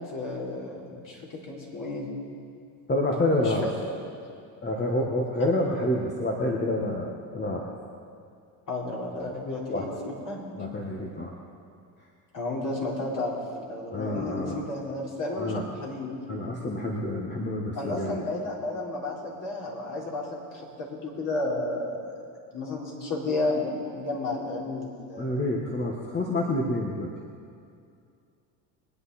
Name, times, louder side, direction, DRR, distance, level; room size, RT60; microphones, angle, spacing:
voice 1, 0.1-1.2 1.5-2.1 3.4-3.7 8.7-9.9 10.3-10.4 12.3-16.2 17.7-20.4 20.8-22.0 22.5-25.4, left 2 dB, 45° left, -4 dB, 4.4 m, -32 dB
voice 2, 2.9-3.7 4.6-7.7 9.7-9.9 10.6-11.3 13.9-14.6 15.4-15.7 16.3-18.2 25.2-27.1, left 1 dB, 20° left, -1 dB, 1.6 m, -28 dB
22.5 x 9.6 x 4.3 m, 2.4 s
supercardioid pair, 90°, 46 cm